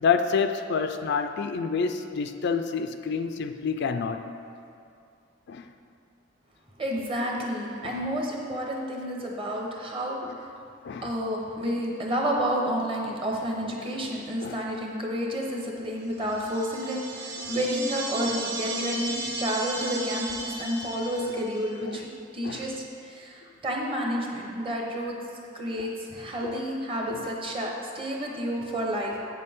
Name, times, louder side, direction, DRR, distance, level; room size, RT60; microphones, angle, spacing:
voice 1, 0.0-4.2 5.5-5.6 7.8-8.1 10.2-10.4 10.8-11.1 14.4-14.6 18.3-18.4 21.9-22.0 22.4-22.6 25.8-25.9 26.4-26.6 27.1-27.3, left 5 dB, 60° left, 8 dB, 0.4 m, -28 dB
voice 2, 6.8-10.2 11.0-22.1 22.3-25.2 25.5-29.2, equal, 30° right, -1 dB, 1.1 m, -30 dB
sound 1, 16.3-21.7, right 1 dB, 55° right, 1.0 m, -34 dB
8.4 x 6.7 x 3.6 m, 2.5 s
head